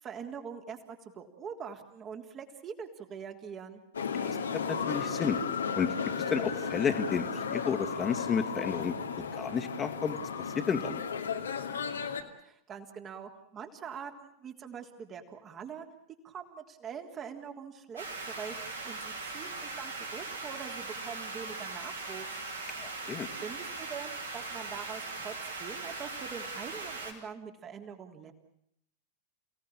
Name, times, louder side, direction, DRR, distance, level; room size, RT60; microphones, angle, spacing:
voice 1, 0.0-3.8 12.4-15.9 16.2-22.3 23.4-28.3, right 7 dB, 25° right, 5 dB, 3.6 m, -43 dB
sound 1, 3.9-12.2, left 6 dB, 70° left, 2.5 m, -34 dB
voice 2, 4.2-5.4 5.7-5.9 6.3-8.9 9.3-10.2 10.5-11.0 22.8-23.3, left 6 dB, 20° left, 7 dB, 2.5 m, -31 dB
sound 2, 18.0-27.1, right 3 dB, 80° right, 5.3 m, -40 dB
29.5 x 18.0 x 8.8 m, 0.75 s
figure-of-eight pair, 90°, 0 cm